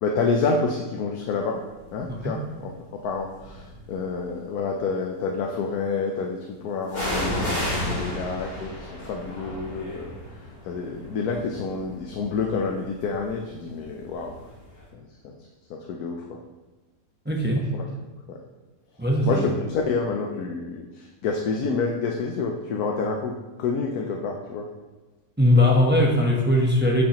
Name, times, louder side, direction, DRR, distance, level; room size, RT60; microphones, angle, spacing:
voice 1, 0.0-1.6 1.9-2.7 3.0-10.1 10.6-14.3 14.9-15.4 15.7-16.4 17.7-17.8 18.3-18.4 19.3-23.3 23.6-24.7, left 4 dB, 85° left, 1 dB, 1.2 m, -28 dB
sound 1, 1.9-2.3 3.0-4.0 6.9-14.5 14.8-14.9, left 1 dB, 30° left, 2.3 m, -33 dB
voice 2, 17.2-17.6 19.0-19.5 25.4-27.0, left 1 dB, 10° right, -1 dB, 0.8 m, -20 dB
8.6 x 7.6 x 3.0 m, 1.2 s
omnidirectional pair, 1.6 m